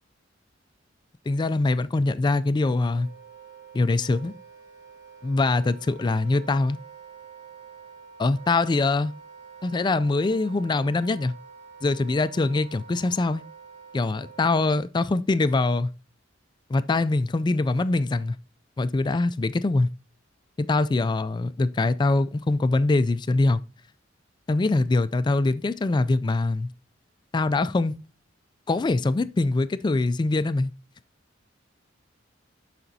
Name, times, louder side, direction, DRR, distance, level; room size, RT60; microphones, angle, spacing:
voice 1, 1.3-3.1 3.7-4.3 5.2-6.8 8.2-9.1 9.6-11.3 11.8-13.4 13.9-15.9 16.7-18.4 18.8-19.9 20.6-23.6 24.5-26.7 27.3-28.0 28.7-30.7, left 2 dB, 25° left, 0.3 m, -23 dB
Wind instrument woodwind instrument, 2.8-14.8, right 6 dB, 20° right, 4.0 m, -47 dB
12.5 x 5.0 x 2.7 m
head